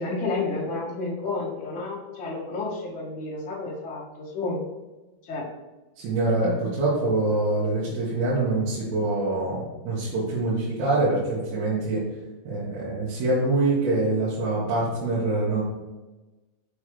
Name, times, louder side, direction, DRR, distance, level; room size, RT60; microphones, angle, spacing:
voice 1, 0.0-4.6 5.2-5.5, left 3 dB, 70° left, -8 dB, 1.1 m, -31 dB
voice 2, 6.0-12.0 12.5-15.6, right 2 dB, 90° right, -9 dB, 4.4 m, -25 dB
8.2 x 5.7 x 3.3 m, 1.1 s
omnidirectional pair, 5.7 m